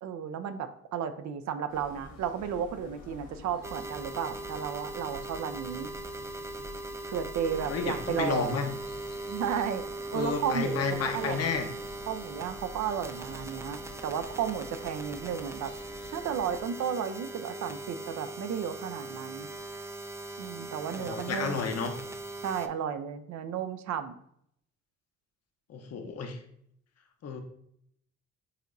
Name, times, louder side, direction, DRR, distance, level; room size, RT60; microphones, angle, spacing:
voice 1, 0.0-5.9 7.1-8.6 9.3-9.8 10.1-11.4 12.1-15.7 16.1-19.5 20.4-21.7 22.4-24.2, right 8 dB, 65° right, 10 dB, 0.5 m, -33 dB
sound 1, 1.7-16.6, left 3 dB, 85° left, 1.3 m, -49 dB
sound 2, 3.6-22.7, right 2 dB, 10° right, 0.3 m, -40 dB
voice 2, 7.7-8.6 10.1-11.7 20.9-21.9 25.7-26.4 27.2-27.4, left 5 dB, 55° left, 5 dB, 0.8 m, -31 dB
6.7 x 3.0 x 2.6 m, 0.70 s
cardioid pair, 90°, 30 cm